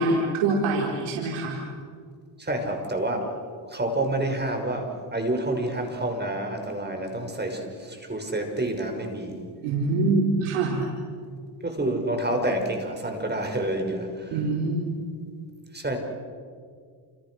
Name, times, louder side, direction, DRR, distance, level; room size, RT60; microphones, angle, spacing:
voice 1, 0.0-1.6 9.6-10.9 14.3-14.9, right 2 dB, 80° right, -1 dB, 4.7 m, -24 dB
voice 2, 2.4-3.3 3.7-9.4 11.6-14.4 15.7-16.0, right 1 dB, 20° right, 4 dB, 6.3 m, -28 dB
29.5 x 29.0 x 6.5 m, 2.1 s
supercardioid pair, 80°, 50 cm